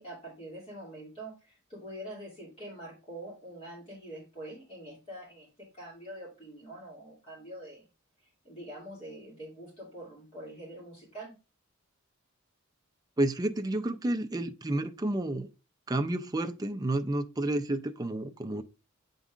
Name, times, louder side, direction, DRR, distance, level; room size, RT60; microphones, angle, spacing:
voice 1, 0.0-5.5 5.7-7.8 8.4-11.3, right 1 dB, 30° left, 2.4 m, -45 dB
voice 2, 13.2-15.5 15.9-18.6, right 1 dB, 20° right, 0.4 m, -30 dB
8.2 x 5.3 x 2.4 m
head